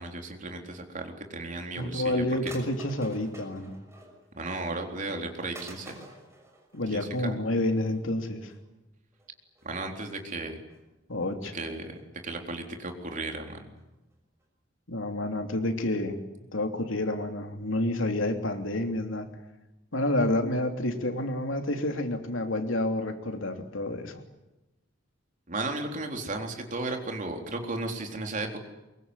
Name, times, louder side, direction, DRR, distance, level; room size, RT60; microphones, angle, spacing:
voice 1, 0.0-2.6 4.3-6.0 6.9-7.4 9.6-10.6 11.5-13.7 25.5-28.6, right 2 dB, 40° right, 3 dB, 3.9 m, -35 dB
voice 2, 1.8-3.7 6.7-8.5 11.1-11.5 14.9-16.2 16.5-19.3 19.9-24.2, left 1 dB, 85° left, 5 dB, 3.1 m, -29 dB
sound 1, 2.5-4.4 4.8-4.9 5.5-7.4 7.8-8.0 8.4-8.6 9.1-9.3 9.6-9.7 10.3-10.8 11.2-11.6 12.0-12.3 12.7-12.8 13.0-13.1 13.5-13.6 13.8-13.9 14.1-14.2 14.4-14.5, right 2 dB, 15° right, 6.1 m, -50 dB
24.0 x 23.0 x 9.8 m, 1.0 s
head